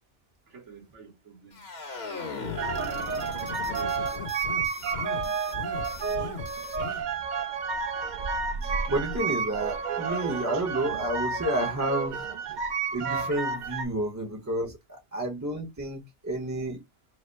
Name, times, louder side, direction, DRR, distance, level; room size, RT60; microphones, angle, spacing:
voice 1, 0.5-1.7 2.3-3.2 3.6-6.5, right 5 dB, 75° right, 1.6 m, -49 dB
sound 1, 1.5-7.0, left 5 dB, 55° left, 1.4 m, -38 dB
sound 2, 2.6-13.9, right 5 dB, 50° right, 0.6 m, -31 dB
voice 2, 8.6-12.2 12.9-16.8, right 1 dB, 15° right, 0.7 m, -30 dB
4.8 x 2.0 x 4.5 m
omnidirectional pair, 1.3 m